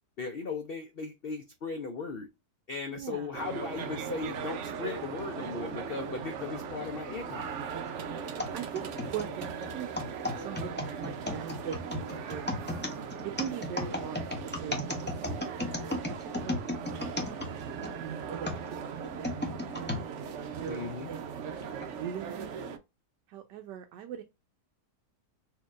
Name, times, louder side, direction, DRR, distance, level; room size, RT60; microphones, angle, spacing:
voice 1, 0.2-2.3 2.7-7.5 20.7-21.1, left 4 dB, 65° left, 0.5 m, -37 dB
voice 2, 2.9-3.3 8.5-9.4 9.7-9.9 10.4-12.5 13.2-15.3 15.8-17.3 17.7-19.5 19.7-22.6 23.3-24.2, right 9 dB, 90° right, 1.2 m, -41 dB
sound 1, 3.3-22.8, right 6 dB, 65° right, 0.7 m, -39 dB
sound 2, 8.4-17.9 18.5-20.0 20.7-20.8 21.6-21.9, left 2 dB, 10° left, 0.5 m, -35 dB
4.4 x 2.8 x 2.4 m
omnidirectional pair, 1.8 m